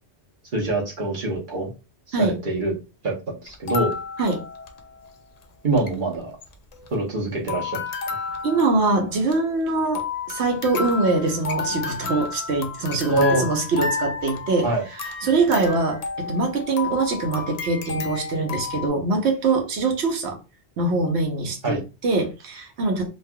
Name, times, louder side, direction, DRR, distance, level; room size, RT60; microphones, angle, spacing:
voice 1, 0.5-1.7 2.1-2.7 3.0-3.9 5.6-6.3 6.9-7.8 13.1-13.5 14.6-14.8 21.6-21.8, right 2 dB, 50° right, 1.1 m, -24 dB
sound 1, 3.5-5.2 5.4-5.5 5.7-6.0 6.4-7.2 7.5-18.9, left 5 dB, 55° left, 0.4 m, -32 dB
voice 2, 8.4-20.4 20.8-23.1, right 3 dB, 80° right, 1.0 m, -23 dB
3.2 x 2.4 x 2.2 m
omnidirectional pair, 1.1 m